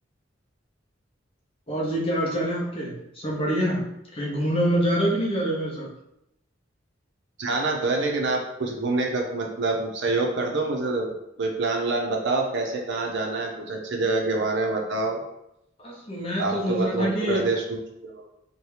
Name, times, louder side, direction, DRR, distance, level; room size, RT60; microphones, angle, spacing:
voice 1, 1.7-5.9 15.8-17.4, equal, 30° left, -3 dB, 0.7 m, -26 dB
voice 2, 7.4-15.2 16.4-18.2, right 3 dB, 65° right, 1 dB, 0.6 m, -26 dB
2.8 x 2.2 x 3.2 m, 0.83 s
head